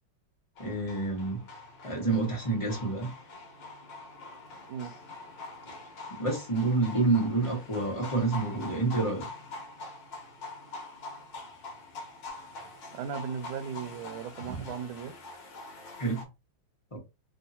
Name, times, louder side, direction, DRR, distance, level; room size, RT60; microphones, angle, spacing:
sound 1, 0.6-16.2, left 3 dB, 65° left, 1.6 m, -44 dB
voice 1, 0.6-1.4 1.8-3.1 6.2-9.3 14.5-14.6 16.0-16.2 16.9-17.0, right 3 dB, 20° left, 1.0 m, -28 dB
voice 2, 12.9-15.1, right 7 dB, 80° right, 1.3 m, -37 dB
3.5 x 2.8 x 2.8 m
omnidirectional pair, 2.3 m